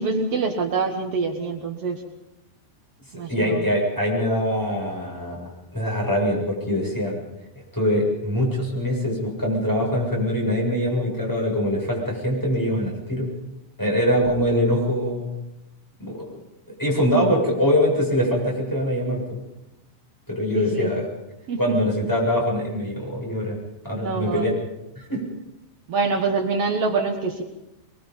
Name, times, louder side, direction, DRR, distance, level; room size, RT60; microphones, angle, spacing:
voice 1, 0.0-2.0 3.1-3.6 20.5-20.9 21.5-21.8 23.9-24.5 25.9-27.4, right 4 dB, 80° right, 3 dB, 1.3 m, -25 dB
voice 2, 3.3-7.2 7.7-13.3 13.8-15.4 16.0-16.3 16.8-19.4 20.3-21.0 21.6-23.6 23.8-24.5 25.0-25.2, equal, 5° left, -3 dB, 7.1 m, -23 dB
23.5 x 22.0 x 5.5 m, 0.91 s
omnidirectional pair, 5.3 m